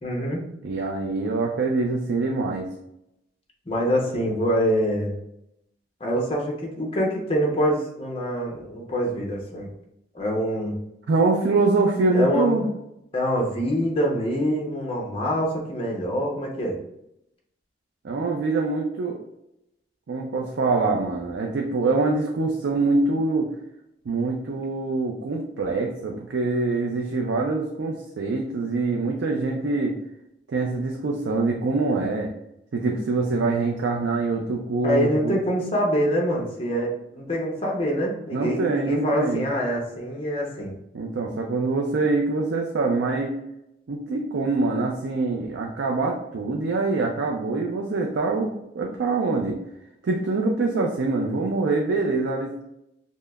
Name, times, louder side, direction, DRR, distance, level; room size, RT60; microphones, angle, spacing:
voice 1, 0.0-0.5 3.7-5.2 6.0-9.7 10.1-10.7 12.1-12.6 13.1-16.8 34.8-40.7, equal, 30° left, -1 dB, 0.7 m, -25 dB
voice 2, 0.6-2.7 11.1-12.6 18.0-19.2 20.1-23.5 24.1-29.9 30.5-32.3 32.7-35.4 38.3-39.5 40.9-43.3 43.9-49.6 50.0-52.5, right 3 dB, 80° right, 0 dB, 0.4 m, -24 dB
5.3 x 2.0 x 2.3 m, 0.83 s
head